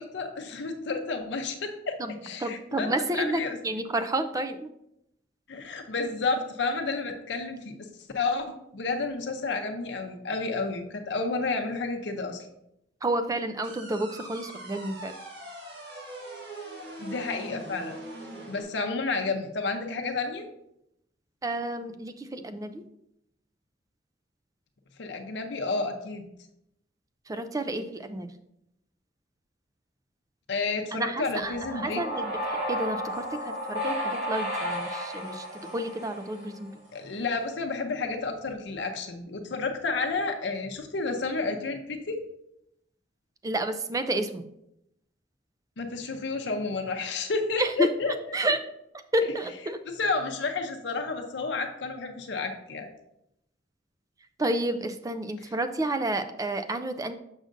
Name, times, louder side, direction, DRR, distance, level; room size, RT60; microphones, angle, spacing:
voice 1, 0.0-2.0 2.2-2.9 3.2-3.6 5.5-7.9 8.1-12.5 17.0-18.0 18.5-20.5 25.0-26.3 30.5-32.0 36.9-42.2 45.8-48.1 49.9-52.9, left 3 dB, 70° left, 4 dB, 0.6 m, -31 dB
voice 2, 2.0-4.7 13.0-15.1 21.4-22.8 27.3-28.3 30.9-32.4 32.7-35.5 35.7-36.7 43.4-44.4 47.6-48.6 49.1-49.8 54.4-57.1, right 1 dB, 20° right, 9 dB, 0.4 m, -30 dB
sound 1, 13.6-18.6, right 1 dB, 65° right, 1.5 m, -42 dB
sound 2, 31.4-36.7, equal, 80° right, 2.2 m, -33 dB
6.4 x 6.3 x 2.6 m, 0.80 s
head